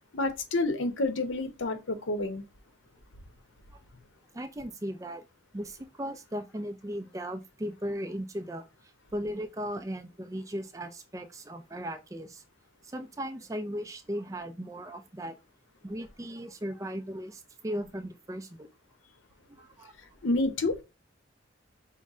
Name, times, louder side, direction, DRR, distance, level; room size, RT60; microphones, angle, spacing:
voice 1, 0.1-2.4 20.2-20.8, left 2 dB, 80° left, 0.8 m, -29 dB
voice 2, 4.3-5.2 5.5-12.4 12.9-15.4 15.8-18.7 19.5-19.9, equal, 15° right, 0.4 m, -37 dB
5.4 x 2.1 x 3.6 m
head